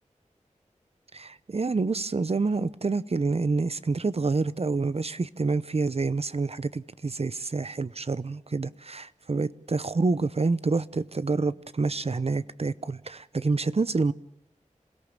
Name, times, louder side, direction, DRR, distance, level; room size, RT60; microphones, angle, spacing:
voice 1, 1.1-14.1, right 3 dB, 50° right, 0.8 m, -27 dB
27.0 x 17.0 x 7.4 m
wide cardioid pair, 50°, 13 cm